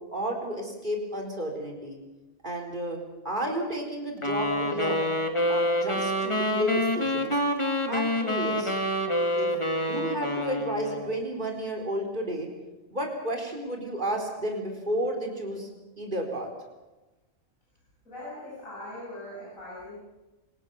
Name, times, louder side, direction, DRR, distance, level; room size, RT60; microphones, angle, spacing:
voice 1, 0.1-2.0 2.4-5.1 5.5-7.4 7.9-8.8 9.3-9.5 9.7-12.5 12.9-15.7 16.0-16.5, right 1 dB, 35° right, 1 dB, 4.6 m, -32 dB
sound 1, 4.2-11.2, left 1 dB, 20° left, 2.1 m, -27 dB
voice 2, 18.0-20.0, left 1 dB, 75° left, -6 dB, 8.1 m, -41 dB
26.5 x 19.0 x 7.1 m, 1.1 s
omnidirectional pair, 1.4 m